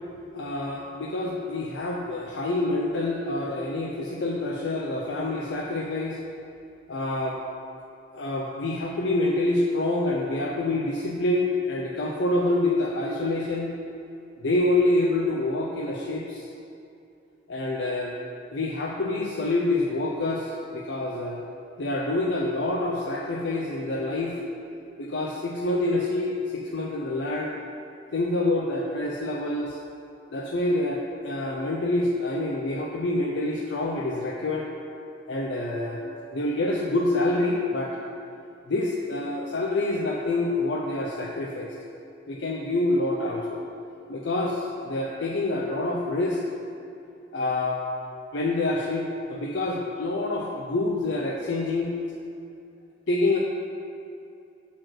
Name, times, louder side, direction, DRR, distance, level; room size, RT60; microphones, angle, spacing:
voice 1, 0.3-6.2 6.9-7.4 8.1-13.7 14.4-16.5 17.5-18.2 18.5-21.4 21.8-24.3 25.0-27.5 28.1-29.8 30.3-34.7 35.3-36.0 36.3-37.9 38.7-41.7 42.3-43.6 44.1-46.4 47.3-47.8 48.3-51.9 53.1-53.4, left 2 dB, 90° left, -2 dB, 0.6 m, -27 dB
6.3 x 4.3 x 6.2 m, 2.6 s
head